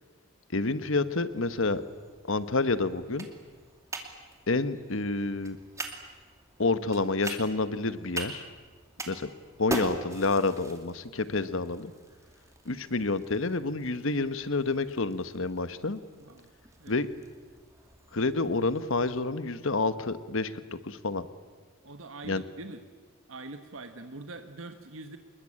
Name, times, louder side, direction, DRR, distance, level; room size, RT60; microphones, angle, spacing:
voice 1, 0.5-1.8 2.3-3.3 4.5-5.6 6.6-8.4 9.1-9.3 9.6-11.9 12.6-16.0 16.9-17.1 18.1-20.5 20.8-21.3 22.2-22.4, left 3 dB, 65° left, 13 dB, 1.2 m, -28 dB
sound 1, 1.3-19.2, right 2 dB, 15° right, 2.4 m, -43 dB
voice 2, 16.2-16.5 16.8-17.0 21.8-22.8 23.3-25.2, right 2 dB, 70° right, 7 dB, 1.4 m, -43 dB
26.5 x 21.5 x 8.7 m, 1.4 s
head